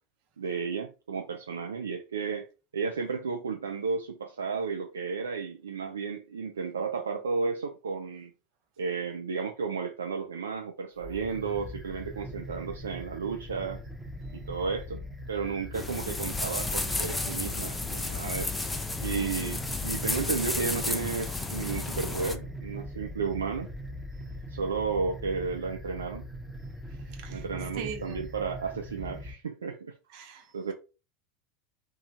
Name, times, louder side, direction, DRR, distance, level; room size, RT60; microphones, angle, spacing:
voice 1, 0.4-2.5 2.7-8.3 8.8-13.8 14.3-15.0 15.3-18.6 19.0-23.7 24.5-26.3 27.3-29.9 30.5-30.7, right 5 dB, 80° right, 0.3 m, -33 dB
sound 1, 11.0-29.3, equal, 10° right, 0.9 m, -41 dB
jalousie against wind, 15.7-22.4, left 3 dB, 10° left, 0.5 m, -32 dB
voice 2, 27.8-28.1 30.1-30.7, right 7 dB, 55° right, 0.8 m, -40 dB
2.9 x 2.3 x 2.7 m
figure-of-eight pair, 80°, 0 cm